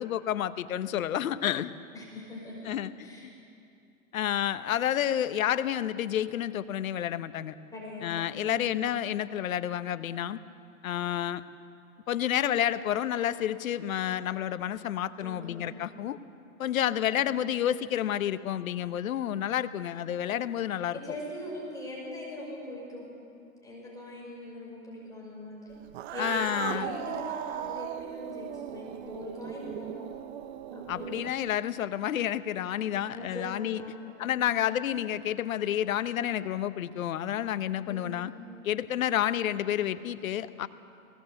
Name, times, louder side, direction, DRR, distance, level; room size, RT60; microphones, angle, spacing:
voice 1, 0.0-1.7 2.7-2.9 4.1-7.6 8.0-10.4 10.8-11.4 12.1-16.2 16.6-21.0 26.2-26.9 30.9-33.8 34.2-38.3 38.6-40.7, left 11 dB, 70° left, 13 dB, 1.0 m, -30 dB
voice 2, 1.9-2.7 3.0-3.2 7.7-8.7 15.2-15.6 17.0-17.3 20.9-23.1 23.6-25.8 26.1-30.1 30.7-31.2 32.8-33.5 33.7-34.2 37.9-38.4, left 1 dB, 10° left, -4 dB, 5.5 m, -41 dB
Cat, 25.9-31.5, right 11 dB, 50° right, 0.9 m, -38 dB
20.5 x 17.5 x 7.9 m, 2.6 s
hypercardioid pair, 130°, 42 cm